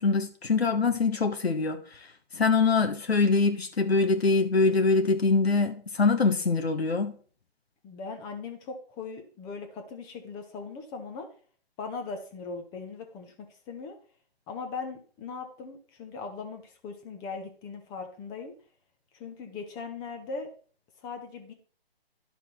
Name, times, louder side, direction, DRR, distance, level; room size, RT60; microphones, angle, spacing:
voice 1, 0.0-2.1 2.3-7.1, left 4 dB, 85° left, 1.2 m, -24 dB
voice 2, 7.8-11.3 11.8-14.0 14.5-18.5 19.1-20.5 21.0-21.5, left 4 dB, 15° left, 0.8 m, -39 dB
11.0 x 5.9 x 4.3 m
figure-of-eight pair, 145°, 31 cm